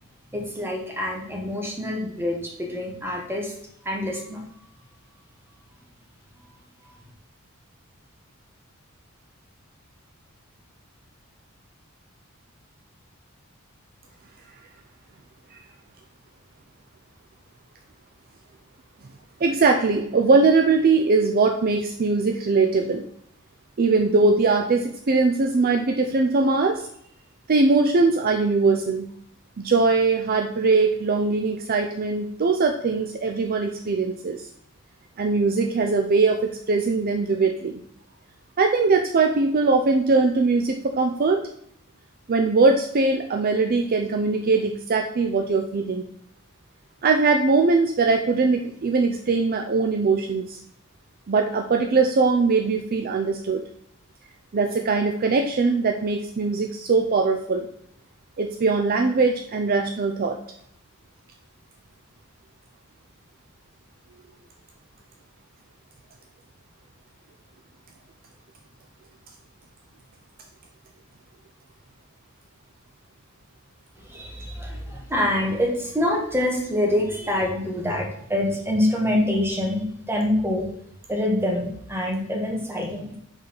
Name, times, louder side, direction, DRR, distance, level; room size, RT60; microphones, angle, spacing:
voice 1, 0.3-3.5 3.8-4.4 6.8-6.9 74.0-80.6 81.1-83.2, left 1 dB, 10° right, -1 dB, 1.6 m, -26 dB
voice 2, 19.4-23.0 23.8-26.9 27.5-29.1 29.6-34.5 35.2-37.8 38.6-41.4 42.3-46.0 47.0-50.6 51.3-53.6 54.5-57.7 58.4-60.4, right 4 dB, 45° right, 4 dB, 0.5 m, -21 dB
5.3 x 4.0 x 5.9 m, 0.68 s
head